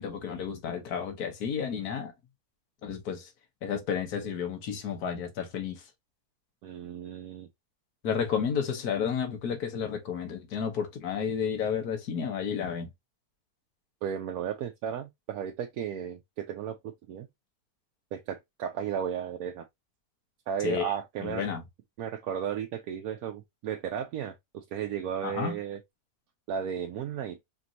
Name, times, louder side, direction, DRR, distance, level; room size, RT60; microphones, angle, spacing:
voice 1, 0.0-2.1 2.8-3.3 3.6-5.8 8.0-12.9 20.6-20.9 21.2-21.6 25.2-25.6, left 7 dB, 75° left, 1.6 m, -31 dB
voice 2, 6.6-7.5 14.0-17.3 18.1-19.7 20.5-21.4 22.0-25.8 26.5-27.4, right 8 dB, 70° right, 1.0 m, -34 dB
5.1 x 2.6 x 2.8 m
omnidirectional pair, 1.7 m